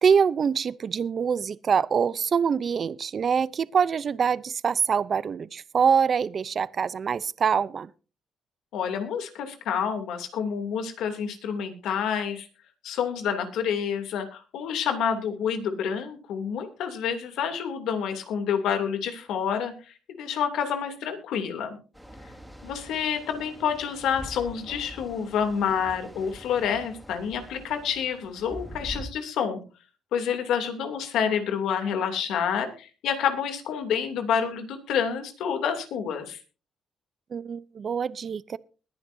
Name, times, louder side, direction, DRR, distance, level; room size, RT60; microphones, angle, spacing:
voice 1, 0.0-7.9 37.3-38.6, right 6 dB, 50° right, 0.6 m, -24 dB
voice 2, 8.7-12.5 12.8-21.8 22.6-29.6 30.1-36.4, left 7 dB, 85° left, 2.8 m, -28 dB
sound 1, 21.9-29.0, equal, ahead, 3.6 m, -44 dB
21.0 x 10.5 x 2.7 m
cardioid pair, 90°, 0 cm